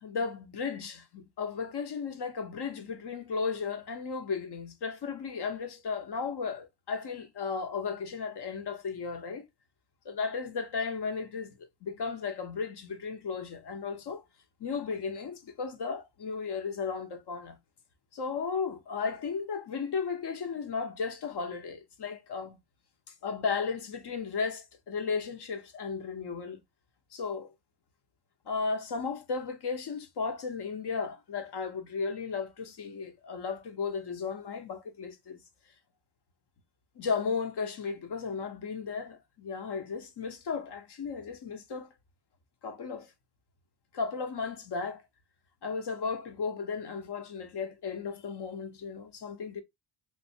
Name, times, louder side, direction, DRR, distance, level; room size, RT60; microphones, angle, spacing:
voice 1, 0.0-9.5 10.0-14.2 14.6-17.6 18.1-22.6 23.2-26.6 27.1-27.5 28.5-35.4 37.0-41.9 42.6-43.1 43.9-45.0 45.6-49.6, left 5 dB, 55° left, 0.9 m, -35 dB
3.2 x 2.7 x 2.7 m
cardioid pair, 90°, 47 cm